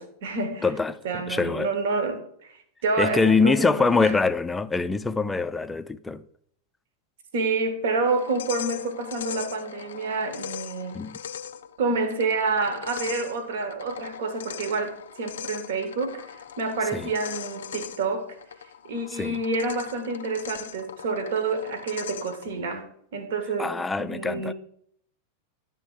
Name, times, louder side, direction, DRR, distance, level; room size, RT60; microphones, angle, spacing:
voice 1, 0.0-0.7 1.0-4.2 7.3-11.0 11.8-18.4 18.8-24.5, right 3 dB, 55° right, 1.2 m, -28 dB
voice 2, 0.6-1.7 3.0-6.2 10.9-11.2 16.9-17.1 19.2-19.4 23.6-24.5, left 4 dB, 10° left, 0.4 m, -24 dB
sound 1, 8.0-22.5, left 8 dB, 65° left, 0.5 m, -40 dB
10.5 x 3.8 x 7.1 m
figure-of-eight pair, 90°, 0 cm